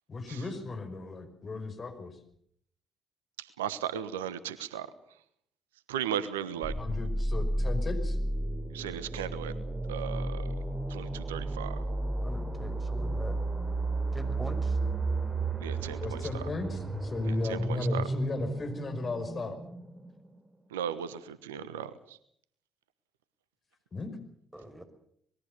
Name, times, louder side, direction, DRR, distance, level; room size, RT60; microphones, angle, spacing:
voice 1, 0.1-2.2 6.8-8.2 16.0-19.6 23.9-24.2, left 3 dB, 40° left, 8 dB, 5.4 m, -36 dB
voice 2, 3.4-4.9 5.9-6.8 8.7-9.5 9.9-10.6 10.9-11.8 15.6-16.5 17.3-18.1 20.7-22.2, right 9 dB, 85° right, 15 dB, 1.1 m, -36 dB
sound 1, 6.6-20.4, right 2 dB, 30° right, 3.6 m, -32 dB
voice 3, 12.2-13.4 14.1-14.8 24.5-24.9, equal, 10° right, 10 dB, 5.9 m, -43 dB
25.5 x 21.0 x 6.9 m, 0.66 s
hypercardioid pair, 45°, 0 cm